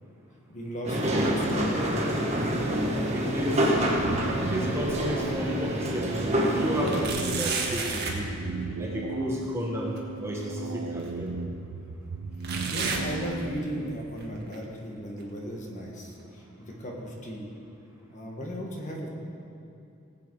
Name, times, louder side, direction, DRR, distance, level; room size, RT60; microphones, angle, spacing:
voice 1, 0.5-1.8 12.4-17.5 18.1-19.1, equal, 35° left, -1 dB, 1.7 m, -36 dB
sound 1, 0.8-7.1, equal, 30° right, 1.6 m, -27 dB
sound 2, 2.3-3.0 3.4-5.3 5.8-5.9 6.9-8.3 10.0-10.1 11.0-11.1 12.4-13.8 14.2-14.5 15.2-15.3 16.2-16.3, right 4 dB, 50° right, 1.6 m, -34 dB
voice 2, 3.1-3.7 4.5-8.3 8.8-11.3, equal, 10° right, -3 dB, 1.5 m, -32 dB
sound 3, 4.0-14.0, right 4 dB, 85° right, 0.5 m, -36 dB
18.5 x 8.5 x 4.9 m, 2.6 s
head